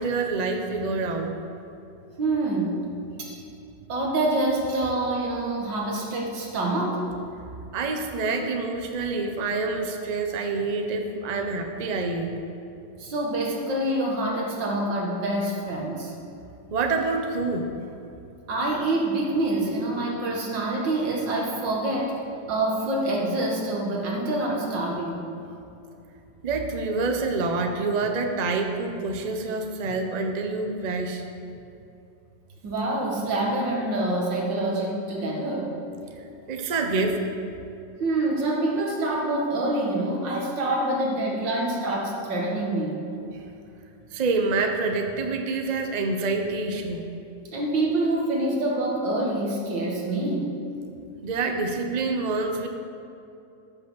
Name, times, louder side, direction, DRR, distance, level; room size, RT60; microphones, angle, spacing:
voice 1, 0.0-1.3 7.7-12.3 16.7-17.7 26.4-31.2 36.2-37.2 44.1-47.0 51.2-52.7, right 3 dB, 35° right, 4 dB, 0.6 m, -27 dB
voice 2, 2.2-2.8 3.2-3.4 3.9-7.1 13.0-16.1 18.5-22.2 22.5-25.2 32.6-35.7 38.0-43.0 47.5-50.5, right 2 dB, 90° right, -2 dB, 2.4 m, -26 dB
13.5 x 6.2 x 6.3 m, 2.7 s
omnidirectional pair, 1.9 m